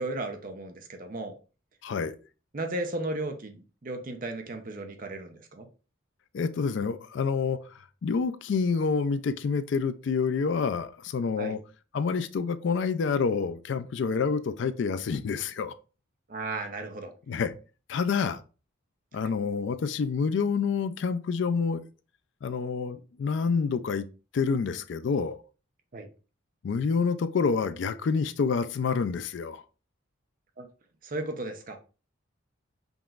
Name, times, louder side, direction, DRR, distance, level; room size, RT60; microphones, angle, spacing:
voice 1, 0.0-1.3 2.5-5.7 11.4-11.6 16.3-17.1 19.2-19.3 25.9-26.1 30.6-30.7 31.0-31.8, right 2 dB, 40° right, 0.6 m, -35 dB
voice 2, 1.8-2.2 6.3-7.6 8.0-11.6 11.9-15.7 17.3-17.5 17.9-18.4 19.1-21.8 22.4-24.0 24.3-25.4 26.6-29.6, left 5 dB, 60° left, 0.3 m, -28 dB
5.3 x 3.0 x 2.4 m
head